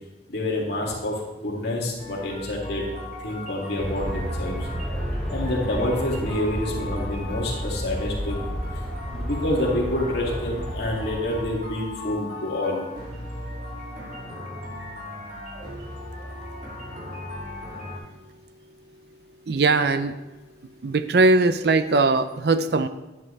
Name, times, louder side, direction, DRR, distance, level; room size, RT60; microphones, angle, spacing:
voice 1, 0.3-2.8 3.2-4.6 5.3-8.4 9.1-12.8, left 1 dB, 60° left, -3 dB, 2.4 m, -27 dB
sound 1, 2.0-18.0, left 1 dB, 45° right, 2.5 m, -38 dB
Aircraft, 3.8-12.2, equal, 5° left, 1.0 m, -32 dB
voice 2, 19.5-20.2 20.8-22.9, right 3 dB, 60° right, 11 dB, 0.5 m, -20 dB
11.0 x 9.1 x 3.3 m, 1.1 s
head